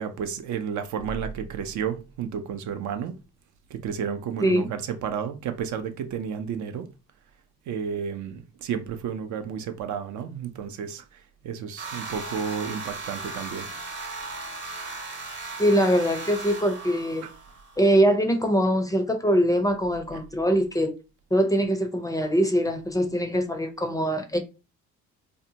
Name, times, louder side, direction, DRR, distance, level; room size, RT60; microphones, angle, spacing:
voice 1, 0.0-3.1 3.7-6.9 7.7-11.0 11.4-13.7 17.2-17.3 19.6-19.7 20.1-20.2, right 7 dB, 70° right, 0.5 m, -32 dB
sound 1, 11.8-17.9, right 3 dB, 35° right, 0.9 m, -37 dB
voice 2, 15.6-17.3 17.8-20.9 21.3-24.4, equal, 10° left, 0.4 m, -23 dB
2.7 x 2.1 x 2.7 m
cardioid pair, 90°, 30 cm